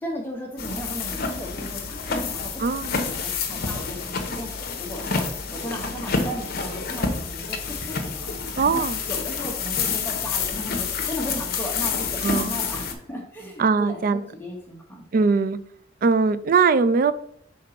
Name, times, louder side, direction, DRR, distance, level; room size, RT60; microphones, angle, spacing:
voice 1, 0.0-5.2 5.5-15.2, equal, 10° left, -1 dB, 1.0 m, -36 dB
sound 1, 0.6-12.9, left 5 dB, 55° left, 0.9 m, -28 dB
voice 2, 2.6-3.0 8.6-9.0 12.2-12.6 13.6-14.2 15.1-15.6 16.0-17.1, right 4 dB, 45° right, 15 dB, 0.4 m, -21 dB
5.2 x 3.8 x 5.7 m, 0.66 s
head